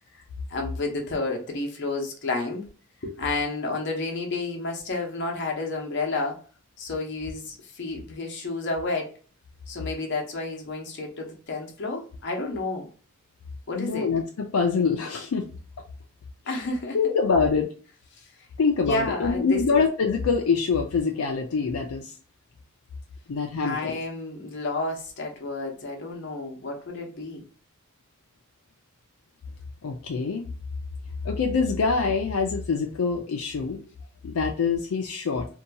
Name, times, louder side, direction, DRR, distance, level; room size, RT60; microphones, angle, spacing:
voice 1, 0.5-2.7 3.0-6.4 6.8-9.1 9.7-12.9 13.7-14.1 16.5-17.0 18.2-18.3 18.8-19.8 23.6-27.5, left 3 dB, 55° left, 0.8 m, -31 dB
voice 2, 13.7-15.4 16.9-17.7 18.6-22.1 23.3-24.0 29.8-30.4 31.2-33.8 34.2-35.5, left 5 dB, 75° left, 0.4 m, -25 dB
2.7 x 2.2 x 2.7 m
head